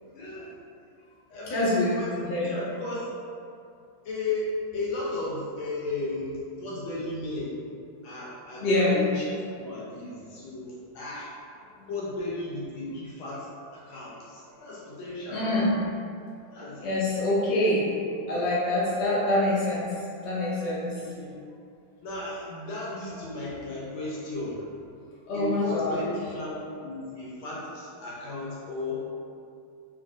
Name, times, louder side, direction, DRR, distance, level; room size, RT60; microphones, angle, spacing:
voice 1, 0.1-0.5 1.3-3.1 4.0-7.6 8.0-9.3 9.5-11.3 11.9-15.7 16.5-16.9 18.1-18.3 21.2-21.4 22.0-24.7 25.3-29.0, left 2 dB, 75° left, -6 dB, 1.4 m, -35 dB
voice 2, 1.5-1.9 2.2-2.5 8.6-9.0 11.8-11.9 15.3-15.7 16.8-17.9 18.3-19.9 20.2-21.0 25.3-26.0, left 1 dB, 60° left, -9 dB, 0.7 m, -25 dB
3.2 x 2.7 x 2.4 m, 2.4 s
omnidirectional pair, 2.3 m